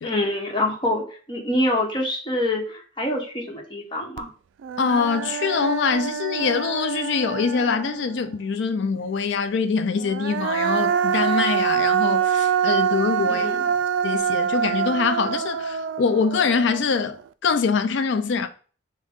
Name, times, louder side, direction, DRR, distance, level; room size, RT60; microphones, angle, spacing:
voice 1, 0.0-4.3 13.3-13.7, left 1 dB, 25° left, 1.1 m, -26 dB
Human voice, 4.2-4.3 4.6-8.3 9.9-17.2, right 8 dB, 80° right, 0.3 m, -25 dB
voice 2, 4.8-13.5 14.0-17.2 17.4-18.5, left 5 dB, 70° left, 0.4 m, -24 dB
6.3 x 2.2 x 3.5 m
head